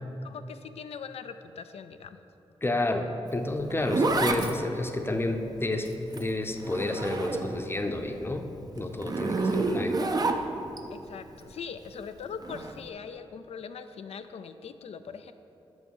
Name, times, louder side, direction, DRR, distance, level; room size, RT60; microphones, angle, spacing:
voice 1, 0.2-2.2 10.9-15.3, left 6 dB, 75° left, 10 dB, 0.4 m, -41 dB
voice 2, 2.6-5.9 6.1-8.5 8.8-10.0, left 2 dB, 20° left, 5 dB, 0.7 m, -30 dB
Zipper (clothing), 3.3-7.8 8.1-10.8 12.4-12.7, right 3 dB, 40° right, 0.5 m, -29 dB
6.2 x 6.1 x 5.4 m, 2.9 s
cardioid pair, 65°, 11 cm